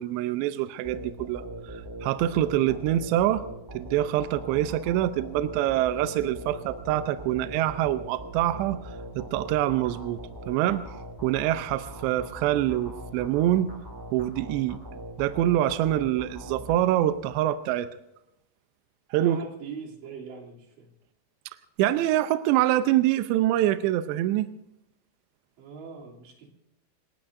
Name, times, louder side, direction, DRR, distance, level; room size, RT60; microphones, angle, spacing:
voice 1, 0.0-3.5 3.7-8.8 9.2-10.2 10.5-10.8 11.2-13.7 14.1-14.8 15.2-17.9 19.1-19.4 21.8-24.5, right 13 dB, 80° right, 10 dB, 2.6 m, -25 dB
sound 1, 0.8-17.5, right 1 dB, 25° right, 0.5 m, -41 dB
voice 2, 19.2-20.9 25.6-26.5, right 5 dB, 65° right, -2 dB, 5.1 m, -42 dB
27.5 x 19.0 x 2.6 m, 0.83 s
omnidirectional pair, 5.8 m